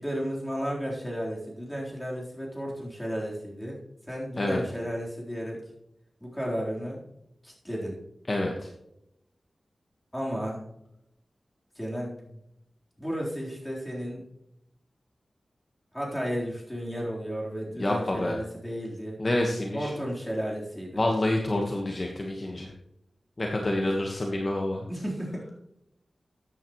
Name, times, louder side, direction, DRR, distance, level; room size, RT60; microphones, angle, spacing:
voice 1, 0.0-3.8 4.1-5.6 6.2-7.0 7.4-8.0 10.1-10.6 11.8-12.4 13.0-14.2 15.9-19.2 19.7-21.0 24.9-25.6, equal, 5° left, -4 dB, 3.8 m, -33 dB
voice 2, 8.3-8.7 17.8-18.4 19.2-19.9 20.9-22.7 23.4-24.8, left 1 dB, 35° left, 1 dB, 1.3 m, -27 dB
13.5 x 9.2 x 3.1 m, 0.80 s
wide cardioid pair, 105°, 0 cm